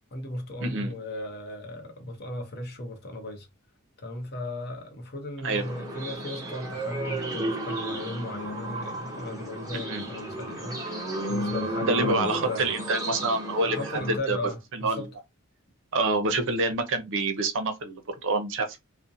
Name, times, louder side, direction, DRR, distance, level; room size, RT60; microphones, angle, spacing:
voice 1, 0.0-3.5 4.0-12.7 13.7-15.1, left 1 dB, 45° left, 0.7 m, -36 dB
voice 2, 0.6-0.9 5.4-5.6 9.7-10.0 11.8-13.8 14.1-14.4 14.7-15.1 15.9-18.8, right 3 dB, 60° right, 0.6 m, -27 dB
sound 1, 5.5-14.2, right 1 dB, 15° right, 0.8 m, -33 dB
2.6 x 2.1 x 2.6 m
head